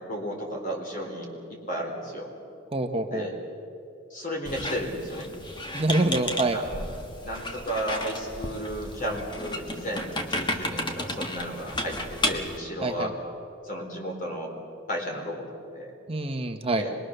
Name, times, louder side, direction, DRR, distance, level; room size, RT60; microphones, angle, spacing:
voice 1, 0.0-2.3 3.1-3.4 4.1-5.3 5.9-6.0 6.5-6.9 7.2-13.1 13.6-14.5 14.9-15.9 16.7-17.0, equal, 45° left, 1 dB, 4.1 m, -33 dB
voice 2, 2.7-3.3 5.7-6.6 12.8-13.1 16.1-16.9, right 2 dB, 30° right, 5 dB, 1.0 m, -26 dB
Squeak, 4.5-12.6, left 1 dB, 25° left, 1.5 m, -33 dB
25.0 x 20.5 x 6.6 m, 2.6 s
head